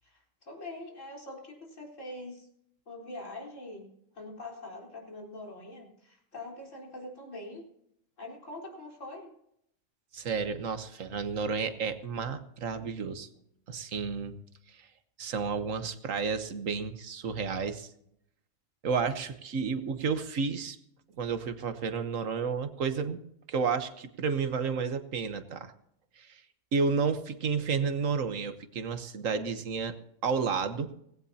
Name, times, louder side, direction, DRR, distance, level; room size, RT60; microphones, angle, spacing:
voice 1, 0.0-2.5 2.9-3.9 4.1-7.6 8.2-9.3, left 2 dB, 70° left, -1 dB, 4.4 m, -43 dB
voice 2, 10.1-13.3 13.7-14.3 15.2-17.9 18.8-20.8 21.2-23.2 23.5-25.7 26.2-26.4 26.7-30.0 30.2-30.9, right 5 dB, 75° right, 9 dB, 1.5 m, -31 dB
18.5 x 16.5 x 2.8 m, 0.74 s
omnidirectional pair, 1.4 m